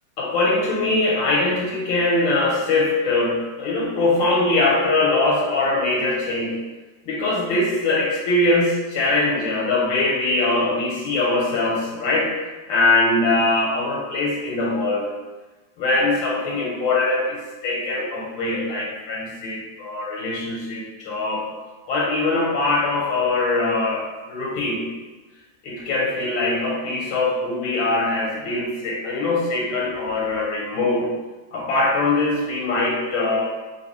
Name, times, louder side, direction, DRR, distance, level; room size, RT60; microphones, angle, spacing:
voice 1, 0.2-6.6 7.1-12.3 12.7-15.1 15.8-21.5 21.9-24.8 25.6-31.1 31.5-33.4, left 2 dB, 85° left, -3 dB, 1.4 m, -22 dB
3.2 x 2.8 x 2.9 m, 1.2 s
omnidirectional pair, 2.0 m